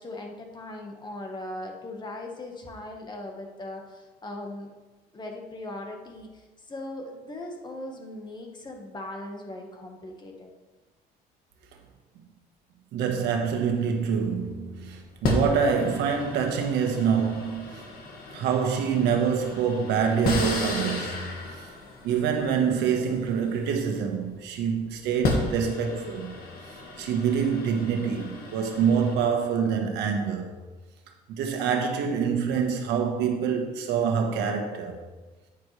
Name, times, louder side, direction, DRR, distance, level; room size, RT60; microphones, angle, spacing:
voice 1, 0.0-4.7 5.1-10.5, left 1 dB, 25° left, 1.6 m, -39 dB
voice 2, 12.9-17.8 18.3-21.7 22.0-26.4 26.7-30.5 31.3-35.0, right 6 dB, 85° right, 1.5 m, -26 dB
sound 1, 14.0-14.3 15.2-24.2 25.0-29.2, left 2 dB, 65° left, 2.0 m, -34 dB
9.2 x 9.2 x 3.4 m
cardioid pair, 110°, 17 cm